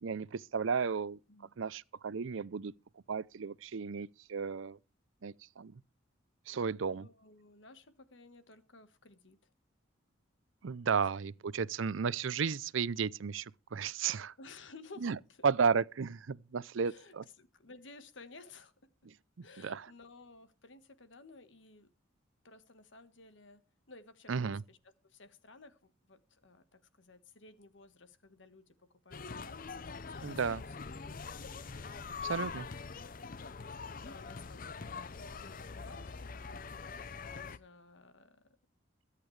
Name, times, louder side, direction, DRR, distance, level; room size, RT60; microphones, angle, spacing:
voice 1, 0.0-1.2 1.6-2.7 3.1-4.8 5.2-5.7 6.5-7.1 10.6-14.3 15.0-15.2 15.4-17.2 19.4-19.9 24.3-24.6 30.2-30.6 32.2-32.7, right 6 dB, 75° right, 0.5 m, -33 dB
voice 2, 6.9-9.5 10.9-11.1 14.4-15.4 16.8-18.7 19.4-21.9 22.4-23.6 23.9-24.8 25.0-31.5 32.5-34.7 35.3-38.5, left 3 dB, 65° left, 1.4 m, -56 dB
sound 1, 29.1-37.6, left 5 dB, 45° left, 0.6 m, -43 dB
22.5 x 8.4 x 3.2 m
head